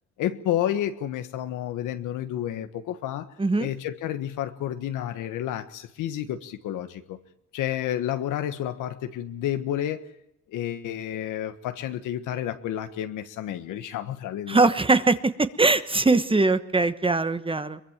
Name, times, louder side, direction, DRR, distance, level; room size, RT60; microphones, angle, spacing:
voice 1, 0.2-3.3 3.6-7.2 7.5-10.1 10.5-14.6, left 11 dB, 90° left, 9 dB, 1.5 m, -30 dB
voice 2, 3.4-3.7 14.5-17.8, right 3 dB, 15° right, 11 dB, 1.2 m, -21 dB
23.0 x 22.0 x 7.4 m, 0.81 s
cardioid pair, 90°, 30 cm